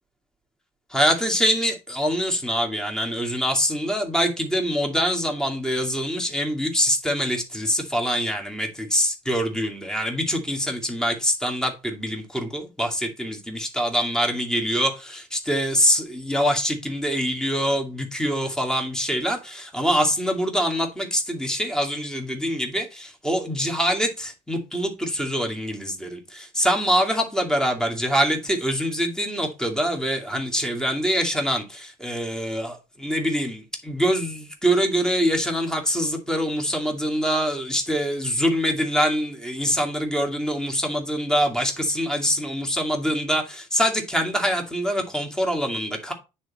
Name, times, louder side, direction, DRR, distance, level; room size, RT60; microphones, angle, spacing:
voice 1, 0.9-46.1, equal, 5° left, 2.4 m, -24 dB
9.4 x 4.3 x 4.1 m
figure-of-eight pair, 55°, 17 cm